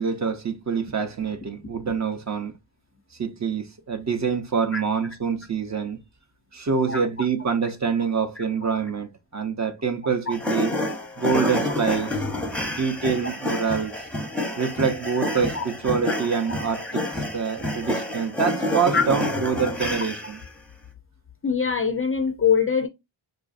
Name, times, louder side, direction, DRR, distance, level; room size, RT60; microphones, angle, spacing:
voice 1, 0.0-2.5 3.2-6.0 6.5-10.7 11.2-12.2 12.7-13.9 14.6-20.4, right 6 dB, 35° right, 0.6 m, -26 dB
sound 1, 10.3-20.5, left 1 dB, ahead, 0.7 m, -28 dB
voice 2, 21.4-22.9, left 6 dB, 30° left, 0.4 m, -24 dB
4.7 x 2.5 x 2.4 m
cardioid pair, 90°, 49 cm